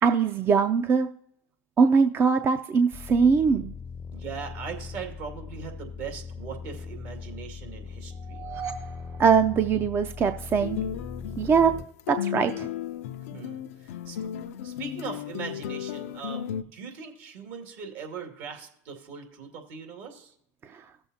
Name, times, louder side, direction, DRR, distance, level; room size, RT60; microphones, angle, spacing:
voice 1, 0.0-1.1 1.8-3.7 9.2-10.8 11.4-11.7 12.1-12.7 20.7-20.8, right 5 dB, 30° right, 9 dB, 0.4 m, -22 dB
sound 1, 2.9-11.9, left 6 dB, 25° left, 0.5 m, -40 dB
voice 2, 4.1-8.4 13.3-14.3 14.6-16.4 16.7-20.3, right 6 dB, 70° right, 2 dB, 2.3 m, -40 dB
sound 2, 8.1-10.4, right 7 dB, 45° right, 1.6 m, -41 dB
sound 3, 10.6-16.6, left 10 dB, 80° left, 0.4 m, -34 dB
16.5 x 7.0 x 2.8 m, 0.72 s
supercardioid pair, 105°, 7 cm